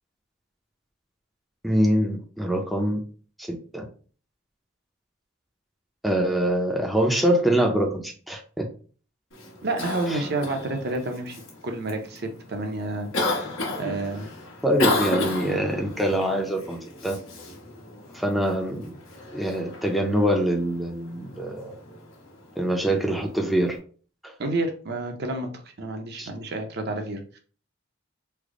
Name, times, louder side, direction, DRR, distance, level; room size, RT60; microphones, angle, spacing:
voice 1, 1.6-3.0 3.4-3.9 6.0-8.7 10.1-10.2 14.6-17.2 18.1-18.9 19.3-21.7 22.6-23.8 24.2-24.3 26.2-26.3, right 1 dB, ahead, 0 dB, 0.5 m, -24 dB
Cough, 9.3-23.8, left 2 dB, 85° left, 1.1 m, -33 dB
voice 2, 9.6-13.1 13.8-14.3 24.4-25.5 25.8-27.4, right 2 dB, 55° right, 4 dB, 0.6 m, -29 dB
3.3 x 2.0 x 3.6 m, 0.41 s
head